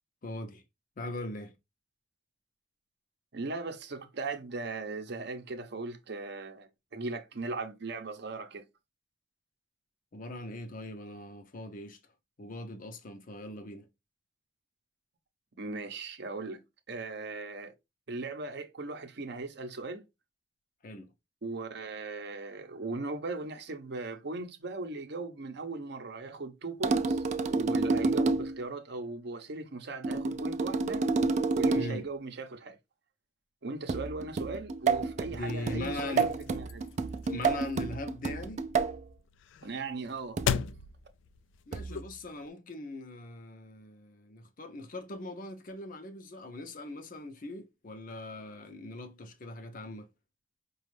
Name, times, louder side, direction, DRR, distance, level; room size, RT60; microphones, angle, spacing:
voice 1, 0.2-0.6 1.0-1.5 10.1-12.0 12.4-13.9 20.8-21.1 31.7-32.1 35.3-36.4 37.3-38.6 41.7-50.1, left 2 dB, 45° left, 0.6 m, -40 dB
voice 2, 3.3-8.7 15.6-16.6 16.9-17.7 18.1-20.0 21.4-27.2 27.5-31.1 31.5-32.8 33.6-36.9 39.6-40.4, right 3 dB, 65° right, 0.7 m, -38 dB
sound 1, 26.8-28.6 30.0-32.1 33.9-39.0 40.4-40.7 41.7-42.0, right 4 dB, 40° right, 0.3 m, -29 dB
sound 2, 35.4-42.5, left 8 dB, 85° left, 0.3 m, -39 dB
5.0 x 2.3 x 3.2 m
head